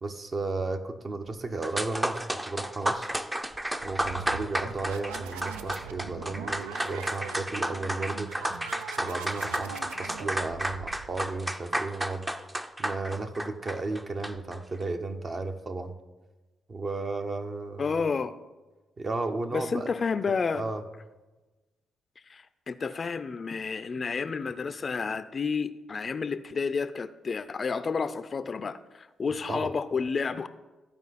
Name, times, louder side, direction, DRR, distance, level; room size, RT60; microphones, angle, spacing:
voice 1, 0.0-3.1 3.8-8.3 9.0-9.7 10.0-12.3 12.8-16.0 16.7-18.1 19.0-19.9 20.5-20.8 29.5-29.7, right 3 dB, 45° right, 6 dB, 0.9 m, -34 dB
sound 1, 1.6-14.6, right 1 dB, 15° right, 0.6 m, -32 dB
sound 2, 3.8-11.4, right 7 dB, 90° right, 0.4 m, -42 dB
voice 2, 17.8-18.4 19.5-20.6 22.3-30.5, left 5 dB, 45° left, 13 dB, 0.5 m, -30 dB
14.0 x 4.7 x 4.2 m, 1.2 s
hypercardioid pair, 50°, 0 cm